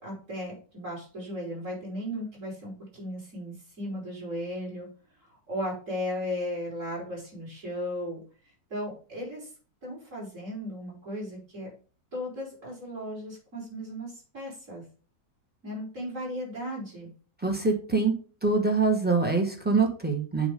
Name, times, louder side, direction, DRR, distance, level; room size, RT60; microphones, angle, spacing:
voice 1, 0.0-4.9 5.5-8.2 8.7-9.5 9.8-11.7 12.1-14.8 15.6-17.1, equal, 45° right, -5 dB, 4.4 m, -36 dB
voice 2, 17.4-18.1 18.4-20.5, right 4 dB, 5° right, 2 dB, 1.1 m, -24 dB
8.4 x 3.0 x 5.0 m, 0.39 s
omnidirectional pair, 1.9 m